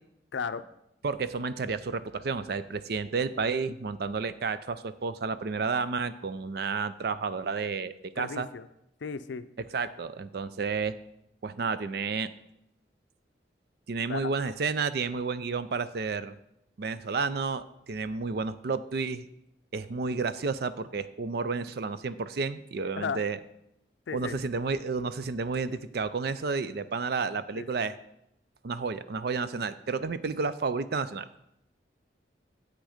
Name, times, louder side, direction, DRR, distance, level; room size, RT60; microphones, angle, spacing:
voice 1, 0.3-0.6 8.2-8.7 9.0-9.4 14.1-14.3 23.0-23.2 24.1-24.4 27.5-27.7, left 5 dB, 75° left, 12 dB, 0.5 m, -34 dB
voice 2, 1.0-8.5 9.7-11.0 11.4-12.3 13.9-16.3 16.8-19.3 19.7-23.4 24.1-27.9 28.6-31.3, right 4 dB, 55° right, 13 dB, 0.4 m, -31 dB
8.2 x 6.3 x 5.0 m, 0.79 s
head